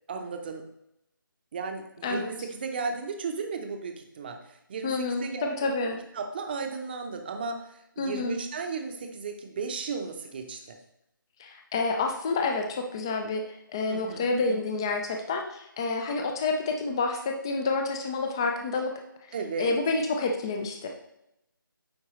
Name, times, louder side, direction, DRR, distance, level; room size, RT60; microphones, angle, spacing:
voice 1, 0.1-0.7 1.5-5.7 6.1-10.8 13.9-14.6 19.3-19.8, right 4 dB, 25° right, 5 dB, 0.7 m, -35 dB
voice 2, 2.0-2.3 4.8-6.0 8.0-8.4 11.4-18.9 19.6-20.9, left 3 dB, 10° left, 3 dB, 0.3 m, -29 dB
8.6 x 4.6 x 3.0 m, 0.82 s
figure-of-eight pair, 155°, 12 cm